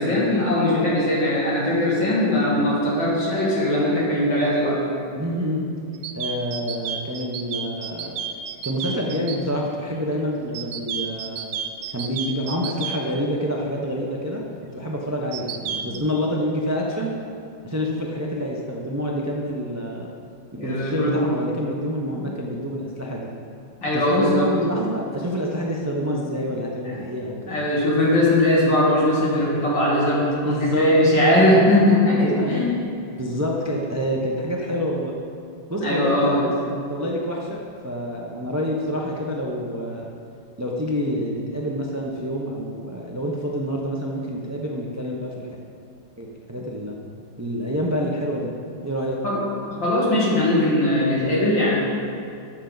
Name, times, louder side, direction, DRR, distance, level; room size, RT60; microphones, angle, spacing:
voice 1, 0.0-4.8 15.8-15.9 20.6-21.2 22.1-22.3 23.8-24.5 26.8-26.9 27.5-32.7 35.8-36.4 49.2-49.4 49.7-51.7, left 1 dB, 80° left, -6 dB, 3.1 m, -20 dB
voice 2, 5.1-5.7 6.1-8.2 8.6-11.5 11.9-14.4 14.7-17.2 17.6-20.1 20.5-23.3 23.9-27.5 30.2-31.0 31.5-31.7 32.2-32.6 33.2-35.1 35.7-40.1 40.6-45.3 46.2-47.0 47.4-48.5 48.8-49.2, equal, 20° right, -1 dB, 0.4 m, -27 dB
sound 1, 5.9-9.4 10.5-13.0 15.3-16.0, right 8 dB, 85° right, 1.3 m, -31 dB
13.0 x 7.4 x 4.0 m, 2.5 s
omnidirectional pair, 2.0 m